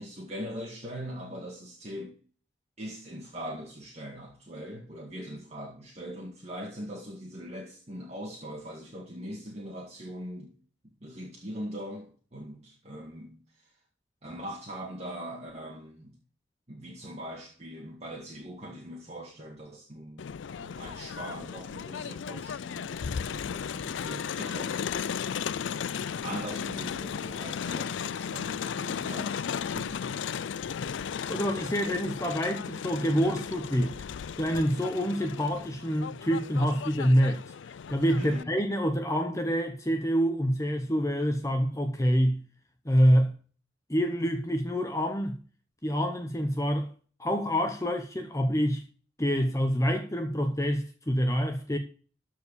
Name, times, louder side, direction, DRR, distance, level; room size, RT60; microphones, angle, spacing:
voice 1, 0.0-2.2 2.8-10.5 11.0-13.4 14.2-16.2 16.7-20.2 20.6-24.9 26.2-30.0 31.6-31.9 38.2-38.5, equal, 35° right, 2.0 m, -41 dB
Crowd, 20.2-38.4, left 7 dB, 75° left, 0.4 m, -35 dB
voice 2, 31.3-33.9 34.4-37.4 37.9-42.4 42.9-43.3 43.9-45.4 45.8-46.9 47.2-48.8 49.2-51.8, equal, 15° left, 0.9 m, -26 dB
13.5 x 4.7 x 6.9 m
head